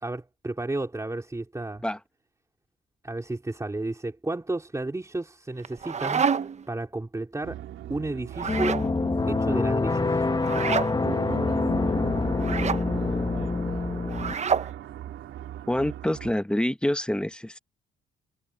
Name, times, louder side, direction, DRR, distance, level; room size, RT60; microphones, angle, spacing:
voice 1, 0.0-1.8 3.0-6.3 6.7-7.6 7.9-8.8 9.3-10.2, right 2 dB, 15° right, 4.1 m, -32 dB
sound 1, 5.6-6.7 8.3-8.9 10.4-10.9 12.4-12.8 14.1-14.7, right 6 dB, 35° right, 0.8 m, -27 dB
sound 2, 7.4-16.3, right 12 dB, 80° right, 3.0 m, -39 dB
sound 3, 8.4-14.3, left 3 dB, 20° left, 1.4 m, -26 dB
voice 2, 12.6-13.4 15.7-17.6, left 1 dB, 5° left, 1.1 m, -28 dB
cardioid pair, 90°, 20 cm